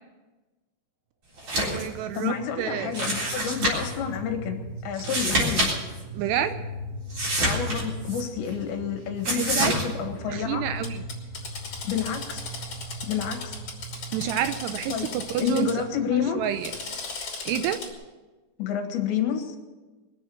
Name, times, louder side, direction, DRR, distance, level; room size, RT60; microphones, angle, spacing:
sound 1, 1.4-1.8 2.2-2.3 2.9-4.0 4.9-5.7 6.0-6.1 7.1-8.2 9.2-9.8, right 1 dB, 35° right, 4.3 m, -26 dB
voice 1, 1.6-2.9 6.1-6.6 9.3-9.7 10.3-11.0 14.1-15.7 16.4-16.7 17.5-17.8, right 10 dB, 80° right, 10 dB, 2.6 m, -28 dB
sound 2, 1.9-16.9, equal, 55° right, 3.6 m, -39 dB
voice 2, 2.1-5.7 7.4-10.7 11.8-12.4 13.1-13.6 14.9-15.1 15.4-16.5 18.6-19.6, left 8 dB, 75° left, 5 dB, 3.8 m, -29 dB
Drill, 9.7-9.8 10.8-15.7 16.4-17.9, left 4 dB, 35° left, 3.8 m, -37 dB
23.0 x 7.7 x 7.0 m, 1.2 s
omnidirectional pair, 5.1 m